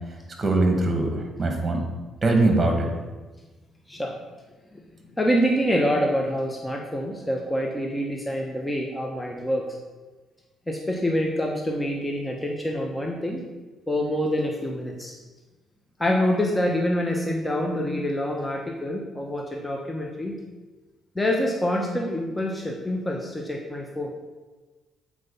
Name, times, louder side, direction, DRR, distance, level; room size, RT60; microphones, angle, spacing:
voice 1, 0.4-1.8 2.2-2.9, right 2 dB, 30° right, 3 dB, 1.9 m, -22 dB
voice 2, 5.2-9.8 10.7-13.4 13.9-15.1 16.0-20.4 21.1-24.1, equal, 15° left, 1 dB, 1.0 m, -26 dB
7.7 x 4.8 x 5.5 m, 1.2 s
supercardioid pair, 75°, 0 cm